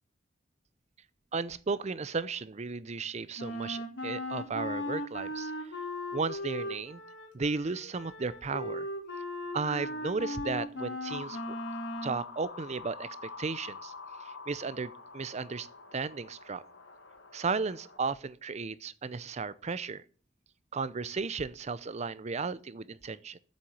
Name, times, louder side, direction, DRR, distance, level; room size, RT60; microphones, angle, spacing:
voice 1, 1.3-5.7 6.1-7.0 7.3-8.9 9.5-11.6 12.0-13.9 14.2-16.6 17.3-20.0 20.7-23.4, right 4 dB, 40° right, 0.6 m, -35 dB
Wind instrument woodwind instrument, 3.4-12.2, left 1 dB, 70° left, 2.0 m, -37 dB
sound 1, 11.1-18.0, left 4 dB, 90° left, 1.5 m, -46 dB
7.7 x 7.1 x 7.9 m
head